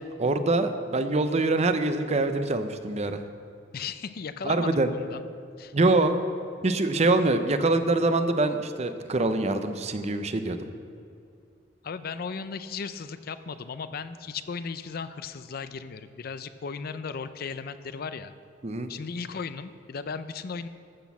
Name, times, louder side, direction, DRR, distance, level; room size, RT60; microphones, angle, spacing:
voice 1, 0.2-3.2 4.4-4.9 5.7-6.2 6.6-10.7 18.6-18.9, right 2 dB, 35° right, 9 dB, 0.7 m, -24 dB
voice 2, 3.7-5.2 5.6-5.7 11.8-18.3 18.9-20.7, left 5 dB, 55° left, 12 dB, 0.5 m, -36 dB
13.0 x 6.2 x 7.1 m, 2.4 s
head